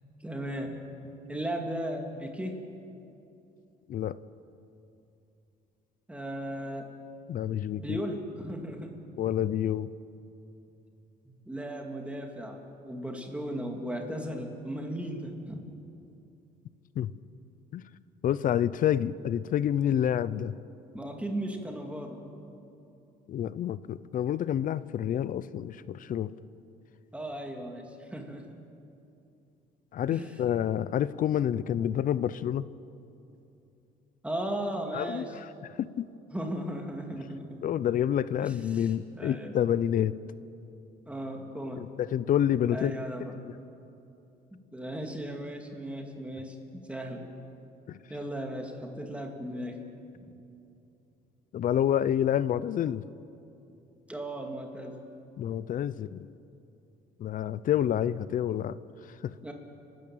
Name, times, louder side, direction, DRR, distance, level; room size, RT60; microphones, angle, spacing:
voice 1, 0.2-0.8 1.3-2.6 6.1-6.9 7.8-8.9 11.3-15.6 20.9-22.3 27.1-28.5 30.1-30.4 30.8-31.0 34.2-35.3 36.3-37.7 38.4-39.6 41.1-41.8 42.7-43.4 44.7-47.3 48.1-49.9 54.1-55.0 59.4-59.5, right 1 dB, 5° right, 2 dB, 2.7 m, -36 dB
voice 2, 7.3-8.0 9.2-9.9 17.0-17.1 17.7-17.8 18.2-20.5 23.3-26.3 29.9-32.7 34.9-35.5 35.8-36.1 37.6-40.1 41.8-43.0 47.9-48.0 51.5-53.0 55.4-56.3 57.2-58.8 59.2-59.3, left 10 dB, 55° left, 17 dB, 0.7 m, -28 dB
30.0 x 13.0 x 8.7 m, 2.8 s
cardioid pair, 110°, 17 cm